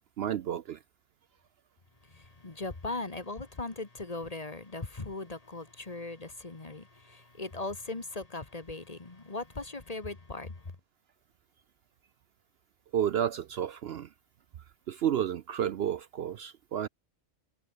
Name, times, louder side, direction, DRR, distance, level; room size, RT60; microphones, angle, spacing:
voice 1, 0.2-0.8 12.9-14.1 14.9-16.9, right 10 dB, 60° right, 0.8 m, -31 dB
voice 2, 2.0-10.8, left 3 dB, 30° left, 1.7 m, -39 dB
omnidirectional pair, 1.2 m